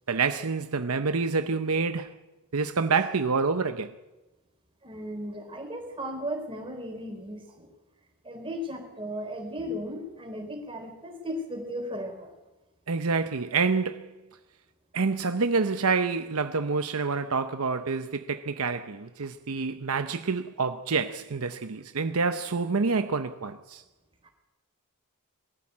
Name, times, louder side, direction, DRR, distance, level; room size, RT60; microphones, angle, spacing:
voice 1, 0.1-2.2 2.5-3.9 12.9-14.1 14.9-23.8, right 4 dB, 70° right, 0.8 m, -27 dB
voice 2, 4.8-7.7 8.2-12.3 24.2-24.3, equal, 25° right, 4.1 m, -36 dB
21.5 x 14.0 x 8.6 m
head